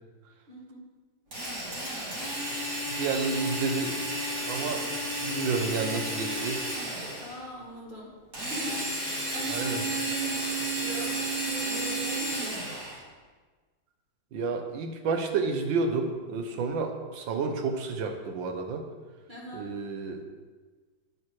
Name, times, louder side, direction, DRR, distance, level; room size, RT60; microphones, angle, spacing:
voice 1, 0.5-0.9 4.6-4.9 7.2-10.5 10.8-12.7 19.3-19.7, equal, 25° right, -4 dB, 1.5 m, -42 dB
Drill, 1.3-7.4 8.3-13.0, right 1 dB, 55° right, 3.0 m, -32 dB
voice 2, 2.9-4.0 4.5-4.8 5.2-6.7 9.5-9.8 14.3-18.9 19.5-20.2, right 4 dB, 75° right, 5 dB, 1.6 m, -30 dB
9.5 x 8.5 x 3.1 m, 1.4 s
omnidirectional pair, 2.1 m